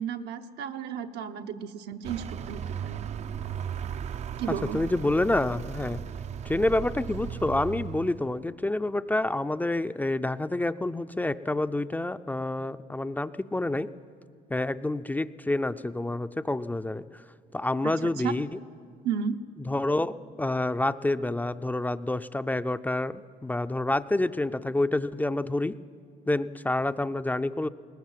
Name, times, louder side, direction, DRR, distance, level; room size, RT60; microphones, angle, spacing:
voice 1, 0.0-3.0 4.4-4.8 17.8-18.3 19.0-19.4, right 7 dB, 80° right, 6 dB, 1.0 m, -33 dB
Vehicle, 2.0-8.4, right 8 dB, 40° right, 0.4 m, -36 dB
voice 2, 4.7-6.0 6.4-13.9 14.5-17.2 17.5-18.5 19.7-25.7 26.3-27.7, left 2 dB, 10° left, 11 dB, 0.4 m, -28 dB
20.5 x 19.0 x 7.5 m, 2.3 s
cardioid pair, 110°, 17 cm